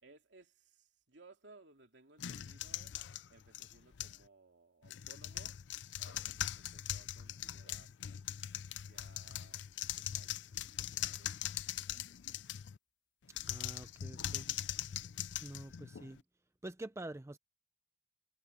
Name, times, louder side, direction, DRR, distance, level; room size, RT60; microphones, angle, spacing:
voice 1, 0.0-2.9 3.3-5.6 6.0-7.9 8.8-9.7 10.0-10.4 10.9-11.4, right 3 dB, 75° right, 3.0 m, -62 dB
sound 1, 2.2-4.3 4.8-12.8 13.3-16.2, left 11 dB, 75° left, 0.5 m, -41 dB
voice 2, 13.5-14.5 15.4-16.2 16.6-17.4, right 1 dB, 15° right, 0.6 m, -46 dB
head